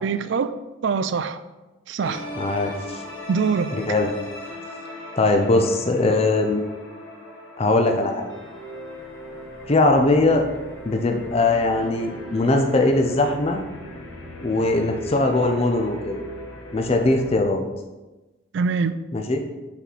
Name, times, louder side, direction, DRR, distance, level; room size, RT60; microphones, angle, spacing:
voice 1, 0.0-0.5 0.8-1.4 1.9-2.3 3.3-3.7 18.5-19.0, right 5 dB, 60° right, 12 dB, 0.3 m, -23 dB
sound 1, 2.0-17.4, left 1 dB, 65° left, 1.2 m, -38 dB
voice 2, 2.4-3.0 3.7-4.1 5.2-6.6 7.6-8.3 9.7-10.5 10.9-13.6 14.4-16.2 16.7-17.6 19.1-19.4, left 2 dB, 30° left, 4 dB, 0.5 m, -20 dB
5.7 x 4.4 x 4.1 m, 1.1 s
head